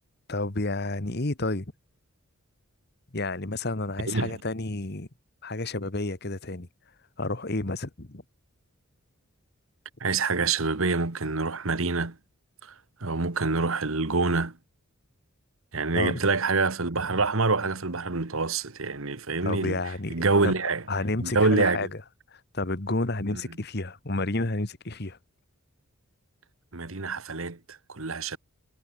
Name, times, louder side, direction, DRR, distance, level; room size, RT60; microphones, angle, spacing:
voice 1, 0.3-1.6 3.1-5.1 5.4-6.7 7.2-8.2 15.9-16.3 19.4-20.1 20.4-20.5 20.9-22.0 22.3-25.2, left 2 dB, 50° left, 1.6 m, -30 dB
voice 2, 4.1-4.4 10.0-12.2 12.6-12.7 13.0-14.6 15.7-19.8 20.1-20.8 21.2-21.9 23.3-23.4 26.7-28.4, right 3 dB, 70° right, 1.5 m, -26 dB
head